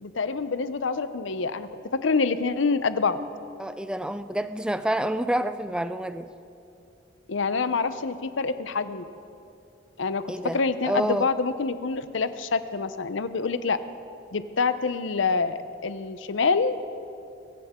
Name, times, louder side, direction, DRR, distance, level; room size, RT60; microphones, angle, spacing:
voice 1, 0.0-1.7 2.0-3.2 7.3-9.0 10.0-10.2 10.5-13.8 14.3-16.7, left 4 dB, 70° left, 12 dB, 0.7 m, -26 dB
voice 2, 3.6-6.3 10.3-11.3, right 1 dB, 5° right, 11 dB, 0.4 m, -28 dB
24.0 x 14.5 x 3.7 m, 2.7 s
head